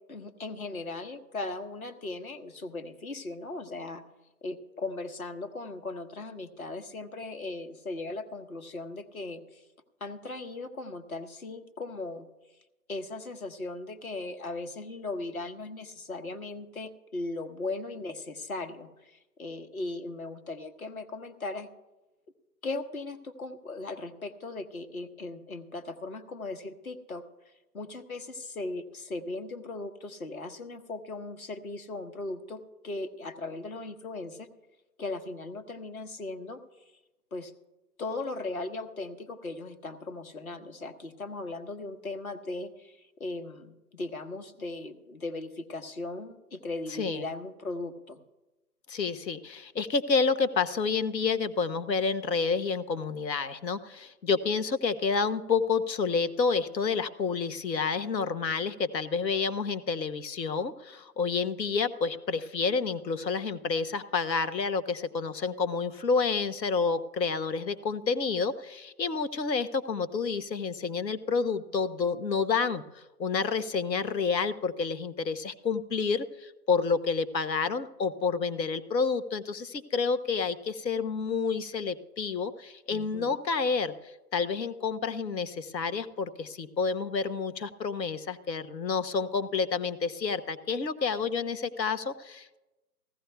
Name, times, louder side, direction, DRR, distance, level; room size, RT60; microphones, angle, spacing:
voice 1, 0.1-4.0 4.4-9.6 10.0-12.3 12.9-21.7 22.6-27.2 27.7-34.5 35.0-36.6 37.3-37.5 38.0-48.2 82.9-83.4, left 2 dB, 55° left, 7 dB, 1.3 m, -38 dB
voice 2, 48.9-83.9 84.3-92.6, left 5 dB, 80° left, 11 dB, 1.1 m, -29 dB
20.0 x 15.0 x 2.3 m, 1.0 s
hypercardioid pair, 180°, 50 cm